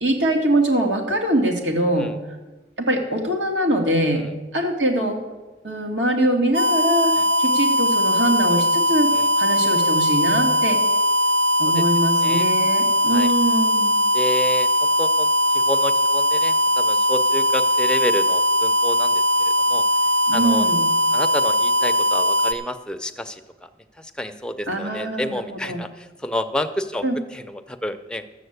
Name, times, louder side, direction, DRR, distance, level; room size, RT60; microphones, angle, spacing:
voice 1, 0.0-2.1 2.8-4.2 4.5-5.2 5.6-9.1 9.4-10.8 11.6-13.9 20.3-20.8 24.7-25.8 27.0-27.2, right 1 dB, 75° right, 1 dB, 2.3 m, -22 dB
sound 1, 6.5-22.5, equal, 60° right, 0.9 m, -19 dB
voice 2, 11.8-12.5 13.1-13.3 14.1-19.8 20.3-20.7 21.1-23.7 24.0-27.0 27.3-28.2, left 1 dB, 5° left, 7 dB, 0.6 m, -30 dB
12.0 x 7.3 x 8.0 m, 1.1 s
head